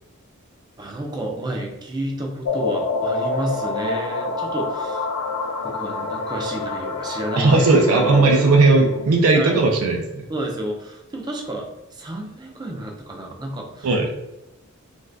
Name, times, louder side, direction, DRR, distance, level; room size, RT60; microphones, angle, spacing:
voice 1, 0.8-5.1 5.6-7.6 7.9-8.4 9.3-9.7 10.3-13.9, right 1 dB, 20° right, 1 dB, 0.4 m, -30 dB
sound 1, 2.5-9.1, left 3 dB, 90° left, 0.3 m, -27 dB
voice 2, 7.4-10.3 13.8-14.1, right 3 dB, 80° right, 1 dB, 0.4 m, -17 dB
2.5 x 2.3 x 3.3 m, 0.95 s
head